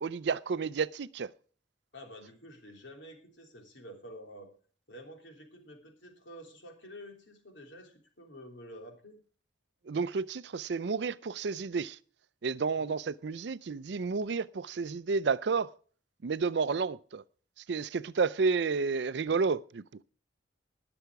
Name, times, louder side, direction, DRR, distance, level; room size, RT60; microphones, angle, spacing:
voice 1, 0.0-1.3 9.9-12.0 12.4-15.7 16.2-17.2 17.7-19.8, right 5 dB, 60° right, 0.5 m, -31 dB
voice 2, 1.9-4.5 4.9-9.2 12.8-13.0, equal, 75° left, 3.2 m, -49 dB
19.5 x 7.0 x 4.7 m
head